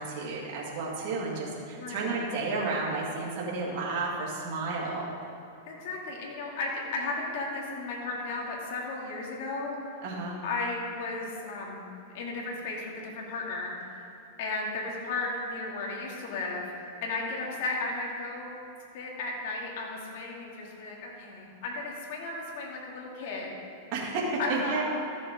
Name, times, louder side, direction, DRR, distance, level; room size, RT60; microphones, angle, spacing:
voice 1, 0.0-5.1 10.0-10.4 23.9-24.8, right 3 dB, 50° right, -5 dB, 2.1 m, -32 dB
voice 2, 1.8-2.2 5.7-10.0 10.4-11.8 12.1-14.1 14.4-18.6 18.9-23.5 24.4-24.8, left 3 dB, 60° left, -2 dB, 2.4 m, -35 dB
13.5 x 7.4 x 3.7 m, 2.6 s
hypercardioid pair, 125°, 0 cm